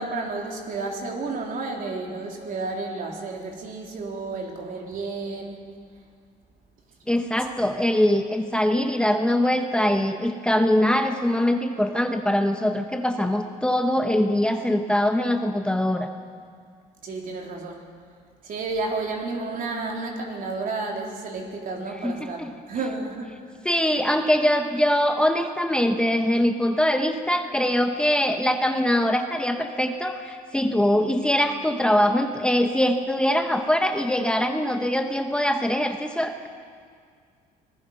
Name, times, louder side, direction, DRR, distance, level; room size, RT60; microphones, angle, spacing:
voice 1, 0.0-5.6 17.0-17.9 18.4-23.3, right 3 dB, 55° right, 0 dB, 3.8 m, -31 dB
voice 2, 7.1-16.1 22.0-22.5 23.6-36.5, left 1 dB, 5° left, 5 dB, 1.0 m, -23 dB
25.0 x 19.5 x 5.6 m, 2.1 s
cardioid pair, 110°, 17 cm